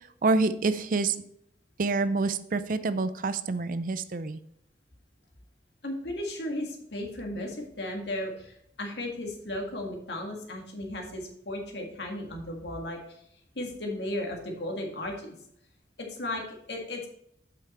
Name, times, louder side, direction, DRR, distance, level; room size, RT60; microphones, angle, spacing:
voice 1, 0.2-1.2 1.8-4.4, right 3 dB, 50° right, 13 dB, 0.5 m, -27 dB
voice 2, 5.8-13.0 13.5-15.3 16.0-17.1, left 1 dB, 70° left, 1 dB, 1.8 m, -35 dB
8.2 x 5.8 x 4.2 m, 0.72 s
head